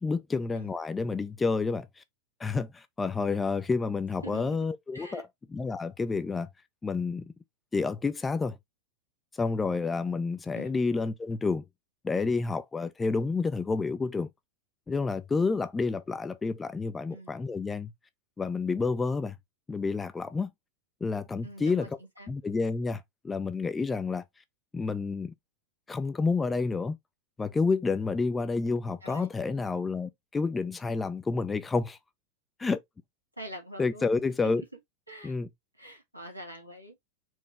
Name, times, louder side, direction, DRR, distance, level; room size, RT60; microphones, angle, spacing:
voice 1, 0.0-2.0 2.4-5.2 5.5-6.5 6.8-7.3 7.7-8.6 9.4-11.6 12.0-14.3 14.9-17.9 18.4-19.4 19.7-20.5 21.0-21.9 22.3-24.2 24.7-25.3 25.9-27.0 27.4-32.0 32.6-32.8 33.8-34.6 35.2-35.5, left 4 dB, 15° left, 0.5 m, -29 dB
voice 2, 4.2-5.2 10.5-10.7 17.1-17.3 21.4-21.9 22.2-22.3 29.0-29.3 33.4-34.1 34.6-34.7 35.1-35.4 35.8-37.0, right 1 dB, 90° right, 1.9 m, -44 dB
4.5 x 3.0 x 3.4 m
figure-of-eight pair, 90°, 0 cm